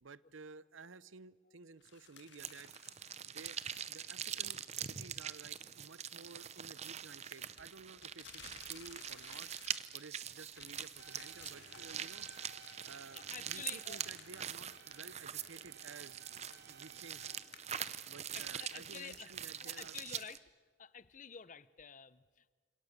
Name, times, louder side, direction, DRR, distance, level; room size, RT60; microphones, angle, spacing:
voice 1, 0.0-2.7 3.3-3.6 3.9-9.5 9.9-12.3 12.8-16.3 16.6-17.2 18.0-20.0, right 4 dB, 80° right, 18 dB, 0.8 m, -54 dB
sound 1, 1.8-4.5 4.8-4.9 7.1-10.1 10.4-15.1 15.5-15.6 16.4-19.4, left 8 dB, 60° left, 2.2 m, -59 dB
sound 2, 2.4-20.4, right 9 dB, 35° right, 0.7 m, -44 dB
sound 3, 11.0-17.4, right 4 dB, 55° right, 2.8 m, -58 dB
voice 2, 13.1-14.0 18.3-19.3 19.6-20.5 20.8-22.5, left 7 dB, 40° left, 17 dB, 0.7 m, -50 dB
29.5 x 27.0 x 6.7 m, 1.5 s
head